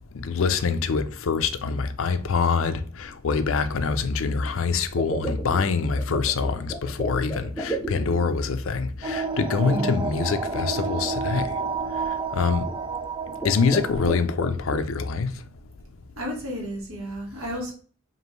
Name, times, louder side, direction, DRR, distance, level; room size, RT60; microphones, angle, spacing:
voice 1, 0.1-11.5 12.3-12.7 13.4-15.3, left 5 dB, 70° left, 0.4 m, -25 dB
sound 1, 4.9-8.5 9.6-10.3 11.0-11.1 11.6-11.9 12.6-12.9 13.3-14.8, right 2 dB, 5° left, 0.8 m, -34 dB
sound 2, 9.0-14.2, right 4 dB, 20° right, 0.3 m, -30 dB
voice 2, 9.6-10.0 16.1-17.7, equal, 80° right, 1.7 m, -32 dB
5.0 x 2.7 x 3.0 m
head